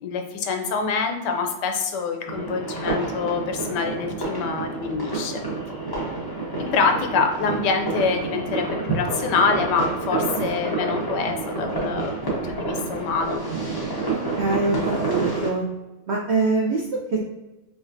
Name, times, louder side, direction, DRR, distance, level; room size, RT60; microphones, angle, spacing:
voice 1, 0.0-5.4 6.6-13.4, left 5 dB, 85° left, 5 dB, 1.2 m, -25 dB
sound 1, 2.3-15.5, right 3 dB, 20° left, 0.6 m, -28 dB
voice 2, 14.1-15.6 16.1-17.2, right 3 dB, 80° right, -1 dB, 0.5 m, -24 dB
5.0 x 2.5 x 2.6 m, 1.0 s
omnidirectional pair, 1.8 m